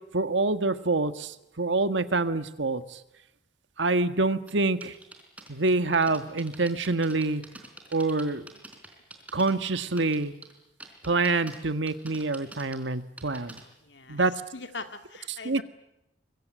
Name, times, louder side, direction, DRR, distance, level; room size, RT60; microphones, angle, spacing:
voice 1, 0.1-3.0 3.8-4.9 5.5-7.4 7.9-8.5 9.3-10.3 11.0-13.5 14.1-14.3 15.3-15.6, right 3 dB, 85° right, 10 dB, 1.6 m, -26 dB
sound 1, 4.5-9.5 9.8-10.5 10.8-11.6 11.9-13.6, right 2 dB, 10° right, 4.2 m, -46 dB
voice 2, 13.8-14.3 14.5-15.6, left 3 dB, 75° left, 7 dB, 2.5 m, -41 dB
25.0 x 23.0 x 9.3 m, 0.85 s
head